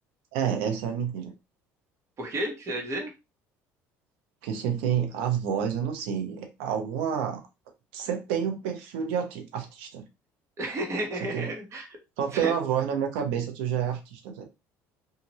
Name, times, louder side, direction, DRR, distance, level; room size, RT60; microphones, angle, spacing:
voice 1, 0.3-1.3 4.4-7.4 7.9-10.0 11.3-11.5 12.2-14.4, right 8 dB, 85° right, 4 dB, 0.8 m, -29 dB
voice 2, 2.2-3.1 10.6-11.9 12.3-12.5, right 1 dB, 40° right, 1 dB, 1.2 m, -32 dB
2.8 x 2.5 x 3.0 m, 0.25 s
supercardioid pair, 85°, 7 cm